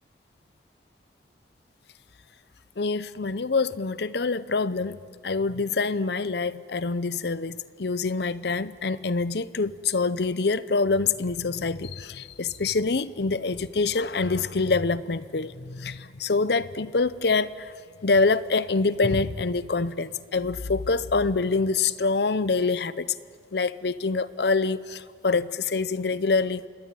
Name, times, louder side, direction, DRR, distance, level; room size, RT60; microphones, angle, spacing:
voice 1, 2.8-5.0 5.2-17.7 18.0-23.1 23.5-26.7, left 4 dB, 70° left, 16 dB, 0.7 m, -25 dB
26.5 x 21.0 x 9.1 m, 2.3 s
head